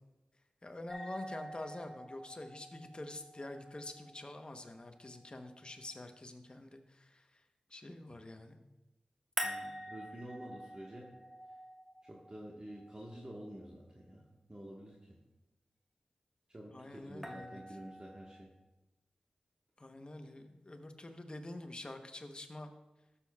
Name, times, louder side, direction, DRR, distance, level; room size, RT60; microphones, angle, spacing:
voice 1, 0.6-7.4 7.7-8.6 16.7-17.6 19.8-22.7, left 1 dB, 35° left, 6 dB, 0.9 m, -47 dB
sound 1, 0.9-5.9 9.4-13.5 17.2-18.4, equal, 5° right, 1.4 m, -46 dB
voice 2, 9.4-11.1 12.0-14.2 14.5-15.0 16.5-18.5, right 1 dB, 35° right, -2 dB, 1.4 m, -49 dB
12.5 x 7.3 x 2.3 m, 1.0 s
cardioid pair, 45°, 3 cm